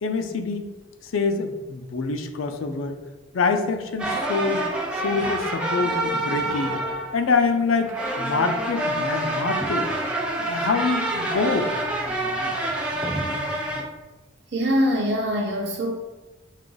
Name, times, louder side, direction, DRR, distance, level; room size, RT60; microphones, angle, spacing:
voice 1, 0.0-0.7 1.0-3.0 3.3-4.6 4.9-6.8 7.1-9.9 10.4-11.7, left 4 dB, 85° left, 6 dB, 0.5 m, -25 dB
sound 1, 4.0-13.8, right 1 dB, 5° right, 0.5 m, -27 dB
voice 2, 14.5-16.0, equal, 55° right, 1 dB, 0.6 m, -23 dB
5.8 x 2.4 x 3.8 m, 1.1 s
head